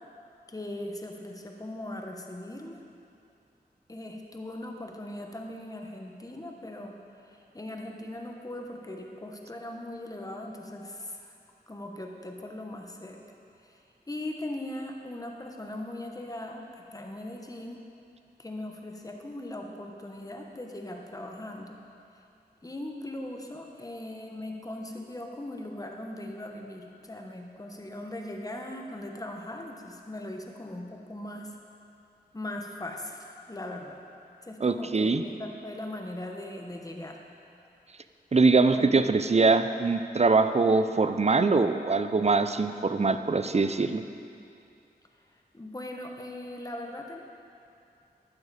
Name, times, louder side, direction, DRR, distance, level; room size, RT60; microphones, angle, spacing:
voice 1, 0.5-2.8 3.9-6.9 7.2-11.3 11.7-13.2 13.6-13.8 14.1-17.8 18.4-21.8 22.6-31.6 32.3-34.0 34.4-37.2 38.7-39.1 45.5-47.2, left 1 dB, 20° left, 1 dB, 1.1 m, -39 dB
voice 2, 34.6-35.2 38.3-44.0, right 3 dB, 40° right, 10 dB, 0.5 m, -23 dB
12.5 x 9.5 x 4.2 m, 2.5 s
wide cardioid pair, 70°, 17 cm